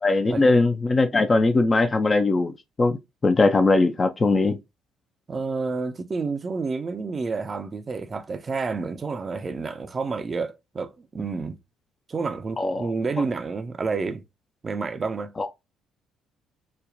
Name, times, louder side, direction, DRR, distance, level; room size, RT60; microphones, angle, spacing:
voice 1, 0.0-2.5 2.8-3.0 3.2-4.6 12.6-12.9 15.4-15.5, left 3 dB, 30° left, 0.4 m, -20 dB
voice 2, 5.3-11.6 12.1-14.2 14.6-15.3, right 4 dB, 35° right, 0.5 m, -29 dB
5.1 x 2.2 x 2.5 m
figure-of-eight pair, 50°, 0 cm